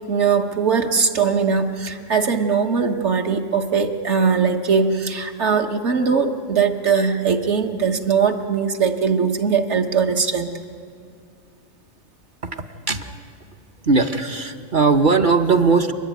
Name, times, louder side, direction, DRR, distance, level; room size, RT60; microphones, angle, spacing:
voice 1, 0.1-10.5, right 5 dB, 60° right, 3 dB, 1.4 m, -20 dB
voice 2, 12.4-13.2 13.8-15.9, right 4 dB, 45° right, 6 dB, 0.9 m, -19 dB
30.0 x 10.5 x 9.3 m, 2.3 s
omnidirectional pair, 1.4 m